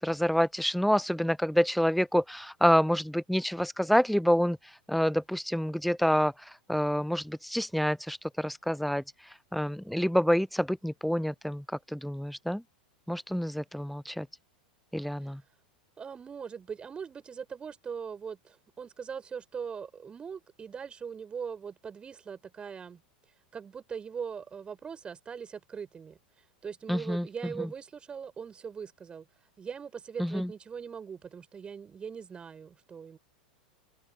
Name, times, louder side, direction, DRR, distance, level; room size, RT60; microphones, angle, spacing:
voice 1, 0.0-4.6 4.9-9.0 9.5-12.6 13.1-14.3 14.9-15.4 26.9-27.7 30.2-30.5, equal, ahead, 0.7 m, -27 dB
voice 2, 16.0-23.0 23.5-26.2 26.6-29.3 29.6-33.2, right 6 dB, 20° right, 7.5 m, -41 dB
figure-of-eight pair, 90°, 5 cm